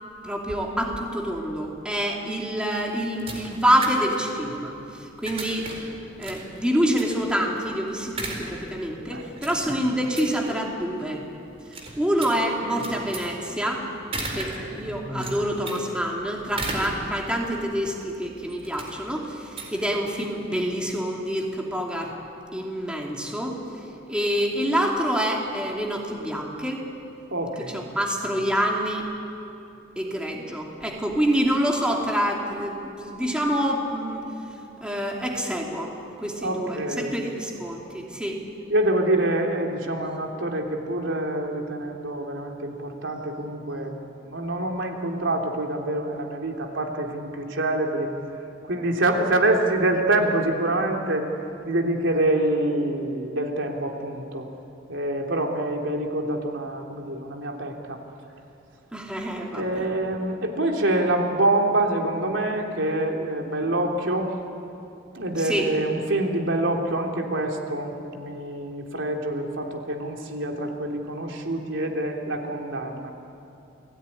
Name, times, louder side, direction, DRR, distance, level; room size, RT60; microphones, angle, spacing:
voice 1, 0.2-5.9 6.2-11.2 11.7-22.1 22.5-26.8 27.7-29.1 30.0-34.2 34.8-35.9 36.2-38.4 58.9-59.9 65.4-65.7, equal, 5° right, -1 dB, 2.9 m, -27 dB
sound 1, 2.6-20.5, right 2 dB, 30° right, 4.3 m, -38 dB
voice 2, 14.3-14.8 27.3-27.9 36.4-37.1 38.7-48.1 48.6-51.3 51.6-54.5 54.9-58.0 59.5-64.3 65.1-73.1, right 1 dB, 80° right, 1 dB, 3.2 m, -26 dB
29.5 x 19.5 x 10.0 m, 2.8 s
head